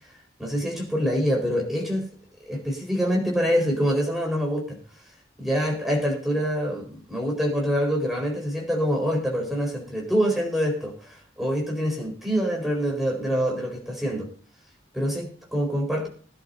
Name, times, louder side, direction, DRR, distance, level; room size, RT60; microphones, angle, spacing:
voice 1, 0.4-2.1 2.5-4.8 5.4-14.3 14.9-16.1, equal, ahead, -1 dB, 4.3 m, -25 dB
21.5 x 11.0 x 2.7 m, 0.43 s
head